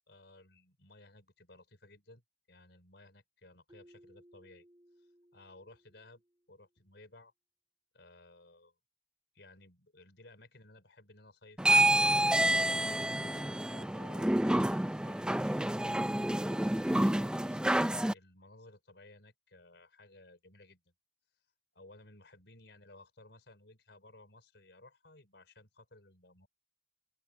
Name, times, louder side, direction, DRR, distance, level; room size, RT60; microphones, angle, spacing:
voice 1, 0.1-2.2 2.5-4.7 5.0-6.2 6.5-7.3 7.9-8.7 9.3-12.0 12.7-17.7 18.1-20.9 21.7-26.5, left 2 dB, 65° left, 5.0 m, -58 dB
Keyboard (musical), 3.7-6.5, equal, 20° right, 4.9 m, -62 dB
sound 1, 11.6-18.1, right 1 dB, 5° right, 0.4 m, -28 dB
open air
head